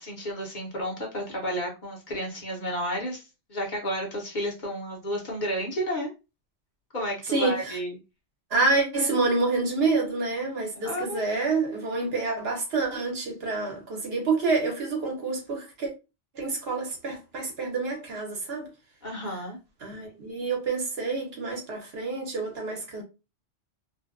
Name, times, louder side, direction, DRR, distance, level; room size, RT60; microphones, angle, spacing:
voice 1, 0.0-3.2 3.5-6.1 6.9-7.9 10.8-11.2 19.0-19.6, equal, 50° left, 0.8 m, -31 dB
voice 2, 7.3-7.8 8.5-15.9 16.3-18.7 19.8-23.0, right 3 dB, 65° right, 1.0 m, -28 dB
2.5 x 2.1 x 2.4 m
omnidirectional pair, 1.2 m